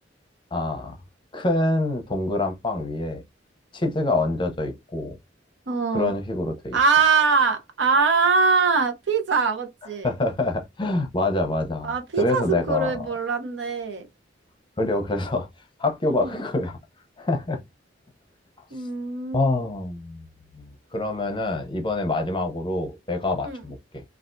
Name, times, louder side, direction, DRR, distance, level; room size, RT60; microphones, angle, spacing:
voice 1, 0.5-1.0 1.3-3.2 3.7-5.2 5.9-6.8 10.0-13.1 14.8-15.5 15.8-16.8 17.2-17.6 19.3-20.2 20.5-24.0, left 2 dB, 25° left, 0.7 m, -26 dB
voice 2, 5.7-6.1 6.7-10.1 11.8-14.1 16.1-16.3 18.7-19.6 23.4-23.6, right 4 dB, 70° right, 0.8 m, -23 dB
3.3 x 2.4 x 2.5 m
head